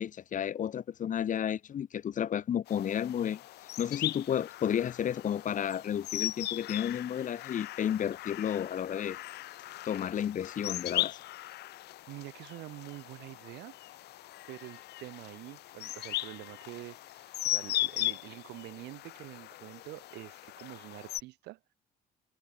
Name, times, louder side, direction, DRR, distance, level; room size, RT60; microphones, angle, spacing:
voice 1, 0.0-3.4 3.8-9.2 9.8-11.2, left 9 dB, 50° left, 2.6 m, -32 dB
sound 1, 2.7-21.2, left 15 dB, 75° left, 5.6 m, -38 dB
voice 2, 12.1-14.1 14.5-21.7, right 18 dB, 85° right, 6.8 m, -46 dB
cardioid pair, 110°, 17 cm